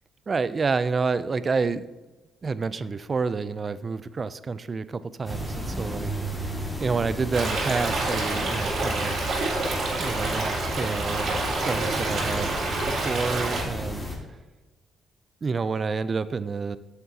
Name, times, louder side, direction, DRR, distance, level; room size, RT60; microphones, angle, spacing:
voice 1, 0.3-1.9 2.4-6.1 6.8-9.2 10.0-12.6 12.9-14.0 15.4-16.8, right 4 dB, 35° right, 15 dB, 0.4 m, -28 dB
sound 1, 5.2-14.2, equal, 5° left, 1.8 m, -33 dB
Stream, 7.3-13.6, right 2 dB, 65° right, 2.2 m, -28 dB
8.5 x 6.7 x 2.8 m, 1.2 s
cardioid pair, 90°, 0 cm